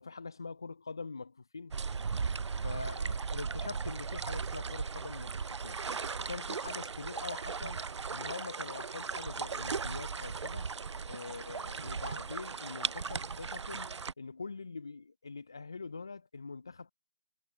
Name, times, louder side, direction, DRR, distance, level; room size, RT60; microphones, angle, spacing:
voice 1, 0.0-1.8 2.6-5.3 5.6-5.8 6.3-10.7 11.1-16.9, left 4 dB, 10° left, 0.3 m, -44 dB
sound 1, 1.7-14.1, right 5 dB, 60° right, 0.4 m, -37 dB
figure-of-eight pair, 150°, 17 cm